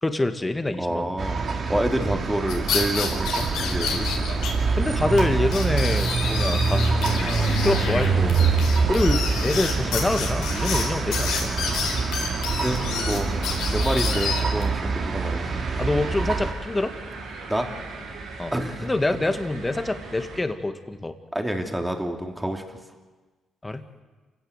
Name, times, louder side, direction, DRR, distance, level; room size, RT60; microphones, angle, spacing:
voice 1, 0.0-1.1 4.7-8.4 8.9-11.5 15.8-16.9 18.4-18.5 18.8-21.2 23.6-23.9, left 2 dB, 15° left, 8 dB, 1.9 m, -26 dB
voice 2, 0.8-1.4 1.7-4.1 12.6-13.3 13.7-15.6 17.5-17.7 18.5-18.9 21.3-22.8, right 1 dB, 5° right, 3 dB, 3.1 m, -28 dB
sound 1, 1.2-16.5, right 4 dB, 50° right, 3.2 m, -25 dB
sound 2, 2.5-4.5 4.8-4.9 5.2-5.3 5.5-14.6, left 5 dB, 90° left, 4.6 m, -29 dB
sound 3, 3.1-20.4, right 3 dB, 85° right, 6.7 m, -37 dB
27.5 x 16.5 x 8.1 m, 1.3 s
cardioid pair, 90°, 0 cm